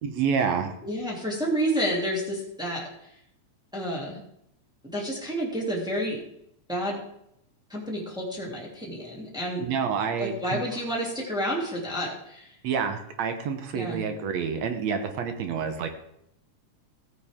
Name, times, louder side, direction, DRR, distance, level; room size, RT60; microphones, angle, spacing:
voice 1, 0.0-0.7 9.6-10.6 12.6-15.9, right 6 dB, 70° right, 6 dB, 2.2 m, -28 dB
voice 2, 0.8-2.9 3.7-4.2 4.9-6.2 6.7-7.0 7.7-9.6 10.2-12.5 13.7-14.0, equal, ahead, -4 dB, 2.5 m, -30 dB
15.5 x 9.2 x 3.7 m, 0.76 s
omnidirectional pair, 3.3 m